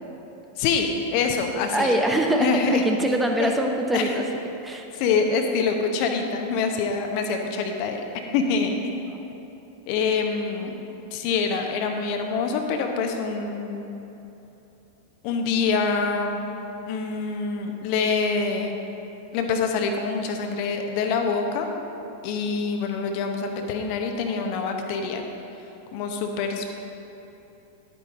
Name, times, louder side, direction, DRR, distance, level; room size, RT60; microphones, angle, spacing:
voice 1, 0.6-1.9 2.4-2.8 3.4-3.5 3.9-4.1 4.9-8.0 8.3-9.2 9.9-10.8 11.1-13.8 15.2-16.4 16.9-18.8 19.3-21.7 22.2-25.2 25.9-26.7, left 5 dB, 45° left, 4 dB, 1.0 m, -25 dB
voice 2, 1.7-4.2 4.6-4.9 9.1-9.2, right 1 dB, 10° right, 3 dB, 0.8 m, -23 dB
11.5 x 8.6 x 3.8 m, 3.0 s
figure-of-eight pair, 90°, 0 cm